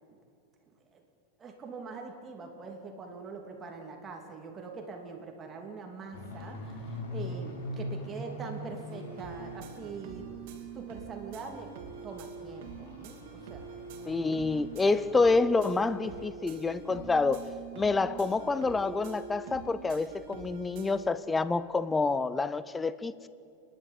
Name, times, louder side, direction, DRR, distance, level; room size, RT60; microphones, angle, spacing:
voice 1, 0.7-1.0 1.4-10.4 10.7-11.8 12.0-14.4, right 4 dB, 20° right, 2.8 m, -43 dB
sound 1, 6.1-10.7 11.1-16.3 16.6-16.8 17.2-17.3 17.7-17.8, left 1 dB, 75° left, 4.6 m, -43 dB
sound 2, 8.9-21.1, right 6 dB, 60° right, 2.7 m, -45 dB
voice 2, 14.1-17.4 17.8-23.3, left 3 dB, 10° left, 0.6 m, -28 dB
28.5 x 11.5 x 9.0 m
supercardioid pair, 145°, 0 cm